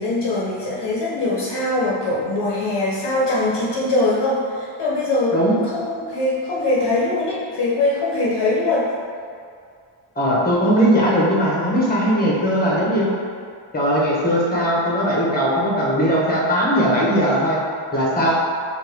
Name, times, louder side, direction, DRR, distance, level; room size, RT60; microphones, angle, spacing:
voice 1, 0.0-5.4 5.7-8.9, left 2 dB, 55° left, -6 dB, 0.7 m, -22 dB
voice 2, 10.2-13.1 13.7-17.6 17.9-18.3, equal, 20° left, -6 dB, 1.0 m, -19 dB
4.5 x 2.6 x 3.4 m, 2.2 s
wide cardioid pair, 130°, 50 cm